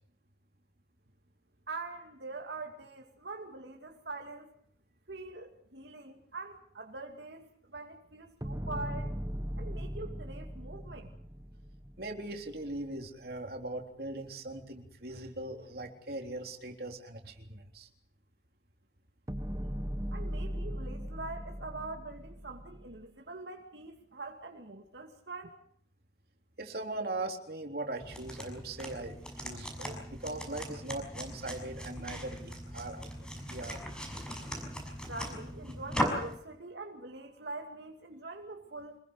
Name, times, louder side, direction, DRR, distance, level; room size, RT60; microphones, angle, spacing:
voice 1, 1.7-4.5 5.1-9.1 9.6-11.1 20.1-25.5 35.1-39.0, right 3 dB, 75° right, 2 dB, 2.6 m, -44 dB
sound 1, 8.4-12.7 19.3-23.0, equal, 20° right, 1.3 m, -39 dB
voice 2, 12.0-17.9 26.6-33.8, right 2 dB, 55° right, 4 dB, 3.7 m, -40 dB
sound 2, 28.0-36.4, equal, 5° left, 6.1 m, -39 dB
27.0 x 21.0 x 6.6 m, 0.66 s
head